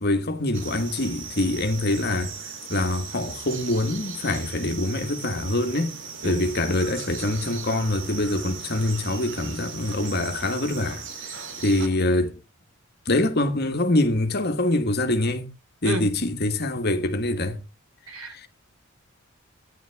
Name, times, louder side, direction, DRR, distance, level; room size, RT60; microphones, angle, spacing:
voice 1, 0.0-2.3 2.7-5.9 6.2-12.3 13.0-15.5 15.8-17.6 18.3-18.5, left 1 dB, 50° left, 1.5 m, -25 dB
sound 1, 0.5-11.9, right 6 dB, 60° right, 2.6 m, -38 dB
voice 2, 18.1-18.5, right 1 dB, 80° right, 2.5 m, -31 dB
14.0 x 10.5 x 3.4 m
head